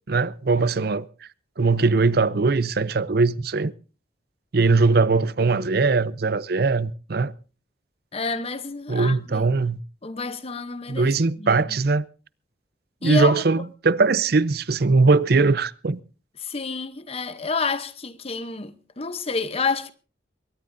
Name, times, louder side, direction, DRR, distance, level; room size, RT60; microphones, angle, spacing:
voice 1, 0.1-1.0 1.6-3.7 4.5-7.3 8.9-9.8 10.9-12.1 13.0-16.0, right 3 dB, 60° right, 0.6 m, -20 dB
voice 2, 8.1-9.5 10.0-11.1 11.4-11.6 13.0-13.4 16.4-19.9, left 4 dB, 35° left, 0.8 m, -29 dB
22.0 x 18.5 x 2.7 m
head